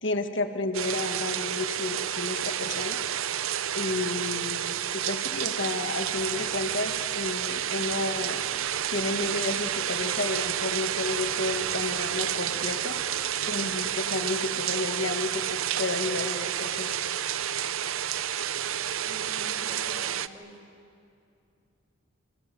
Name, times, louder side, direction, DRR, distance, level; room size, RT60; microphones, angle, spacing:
voice 1, 0.0-3.0 3.7-4.7 5.0-8.4 8.9-13.0 13.5-17.0, left 2 dB, 60° left, 7 dB, 1.7 m, -31 dB
sound 1, 0.7-20.3, right 10 dB, 70° right, 0.7 m, -30 dB
sound 2, 6.0-13.9, equal, 40° right, 6.2 m, -54 dB
voice 2, 19.0-20.6, right 1 dB, 15° right, -5 dB, 6.1 m, -47 dB
29.0 x 26.5 x 7.6 m, 2.5 s
head